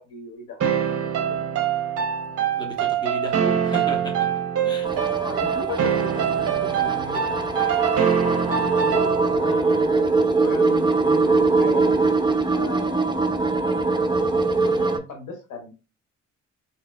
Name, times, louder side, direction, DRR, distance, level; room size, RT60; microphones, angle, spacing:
voice 1, 0.0-1.6 5.2-7.3 8.8-10.0 10.4-12.0 12.5-13.2 14.5-15.7, left 4 dB, 80° left, 1.0 m, -37 dB
sound 1, 0.6-9.5, right 8 dB, 55° right, 0.7 m, -24 dB
voice 2, 2.6-4.3 4.6-4.9, left 1 dB, 15° left, 1.0 m, -35 dB
sound 2, 4.8-15.0, right 3 dB, 15° right, 0.4 m, -22 dB
3.7 x 2.8 x 2.2 m
cardioid pair, 90°, 30 cm